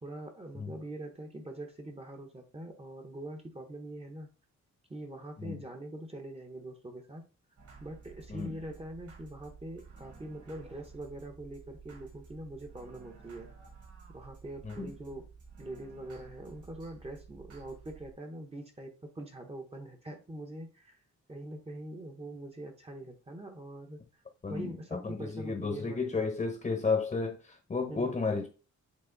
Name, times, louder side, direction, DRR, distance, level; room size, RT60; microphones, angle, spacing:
voice 1, 0.0-4.3 4.9-7.3 7.8-13.5 14.1-15.3 15.6-21.0 21.3-24.0 24.5-26.3 27.9-28.2, right 1 dB, 20° right, 1.0 m, -43 dB
sound 1, 7.6-18.1, right 5 dB, 70° right, 3.7 m, -53 dB
voice 2, 8.3-8.6 14.6-14.9 24.4-28.5, left 4 dB, 25° left, 1.0 m, -33 dB
8.5 x 2.8 x 4.0 m
wide cardioid pair, 120°, 30 cm